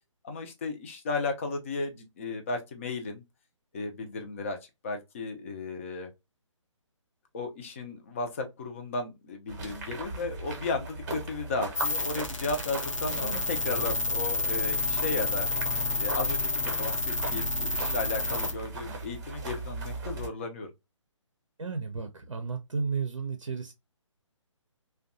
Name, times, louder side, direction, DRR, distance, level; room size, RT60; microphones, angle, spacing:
voice 1, 0.2-3.2 3.7-4.6 4.8-6.1 7.3-15.5 16.0-20.7, left 3 dB, 25° left, 0.5 m, -34 dB
sound 1, 9.5-20.3, right 3 dB, 35° right, 0.7 m, -39 dB
sound 2, 11.8-18.5, left 3 dB, 75° left, 0.8 m, -30 dB
voice 2, 13.2-13.5 21.6-23.7, right 5 dB, 70° right, 0.5 m, -33 dB
2.6 x 2.2 x 2.5 m
figure-of-eight pair, 140°, 16 cm